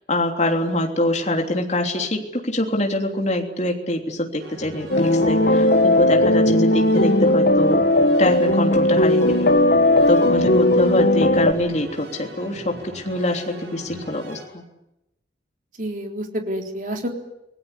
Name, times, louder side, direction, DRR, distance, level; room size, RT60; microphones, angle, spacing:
voice 1, 0.1-7.8 8.2-9.5 10.1-14.6, left 1 dB, 40° left, 2 dB, 3.3 m, -24 dB
sound 1, 4.4-14.5, equal, 65° right, 7.8 m, -40 dB
sound 2, 4.9-11.5, left 1 dB, 55° left, 1.2 m, -17 dB
voice 2, 5.2-5.5 10.0-10.2 15.8-17.1, equal, 45° right, 3 dB, 3.8 m, -29 dB
27.5 x 19.5 x 9.8 m, 0.90 s
head